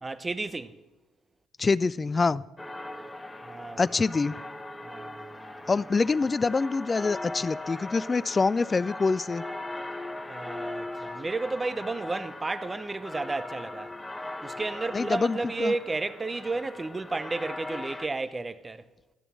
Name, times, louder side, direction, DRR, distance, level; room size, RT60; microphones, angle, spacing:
voice 1, 0.0-0.8 3.4-4.0 4.8-5.7 10.2-13.9 14.4-18.9, right 3 dB, 25° right, 0.7 m, -33 dB
voice 2, 1.6-2.4 3.8-4.3 5.7-9.4 14.9-15.7, left 4 dB, 30° left, 0.3 m, -25 dB
sound 1, 2.6-18.1, left 2 dB, 10° left, 0.8 m, -39 dB
12.0 x 6.8 x 7.5 m
figure-of-eight pair, 50°, 0 cm